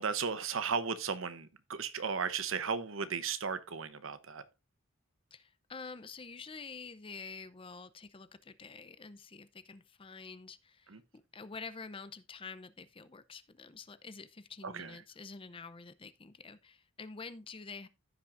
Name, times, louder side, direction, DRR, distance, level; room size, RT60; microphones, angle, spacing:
voice 1, 0.0-4.4 10.9-11.0 14.6-15.0, right 5 dB, 70° right, 0.9 m, -35 dB
voice 2, 5.3-11.0 11.3-17.9, left 4 dB, 25° left, 0.6 m, -48 dB
15.0 x 6.0 x 2.6 m
head